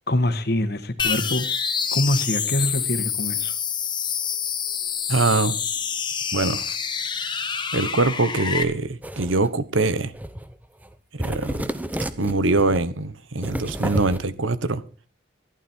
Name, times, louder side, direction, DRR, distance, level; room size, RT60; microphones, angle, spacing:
voice 1, 0.1-1.5 1.9-3.5, left 1 dB, 55° left, 1.6 m, -24 dB
sound 1, 1.0-8.6, left 7 dB, 25° left, 1.2 m, -27 dB
voice 2, 5.1-5.6 6.3-6.8 7.7-10.1 11.1-11.6 12.0-14.8, right 3 dB, 90° right, 1.2 m, -23 dB
sound 2, 9.0-9.5 10.1-10.5 10.8-10.9 11.2-12.8 13.4-14.2, equal, 10° right, 0.8 m, -30 dB
15.0 x 11.5 x 4.4 m
head